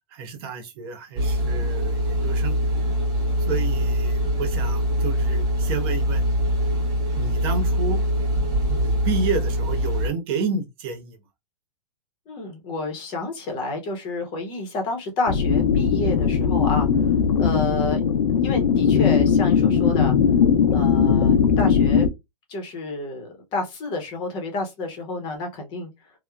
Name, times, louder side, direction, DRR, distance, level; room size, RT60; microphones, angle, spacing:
voice 1, 0.1-2.6 3.4-6.2 7.2-8.0 8.7-11.2, right 4 dB, 35° right, 0.7 m, -30 dB
sound 1, 1.2-10.1, equal, 20° right, 1.1 m, -23 dB
voice 2, 12.3-16.9 17.4-18.0 18.4-20.1 20.7-22.1 22.5-25.9, left 2 dB, 20° left, 0.7 m, -29 dB
sound 2, 15.3-22.1, left 7 dB, 75° left, 0.5 m, -19 dB
3.0 x 2.1 x 2.3 m
hypercardioid pair, 155°, 21 cm